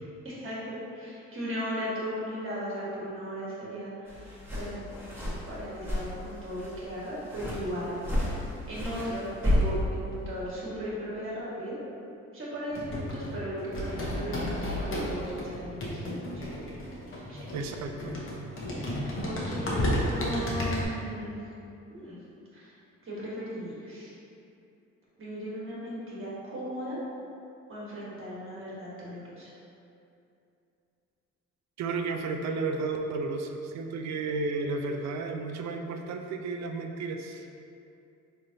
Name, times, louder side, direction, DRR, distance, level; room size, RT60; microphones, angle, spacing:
voice 1, 0.2-4.9 5.5-11.8 12.3-16.6 17.3-17.4 18.7-21.4 21.9-22.2 22.5-22.7 23.0-24.1 25.2-27.0 27.7-29.5, equal, 45° right, -8 dB, 1.4 m, -37 dB
sound 1, 4.1-10.7, left 1 dB, 5° right, 0.9 m, -32 dB
sound 2, 12.7-20.8, left 1 dB, 45° left, 0.9 m, -33 dB
voice 2, 17.5-18.2 31.8-37.5, right 3 dB, 65° right, 4 dB, 0.4 m, -33 dB
3.9 x 3.1 x 2.6 m, 2.7 s
cardioid pair, 90°, 30 cm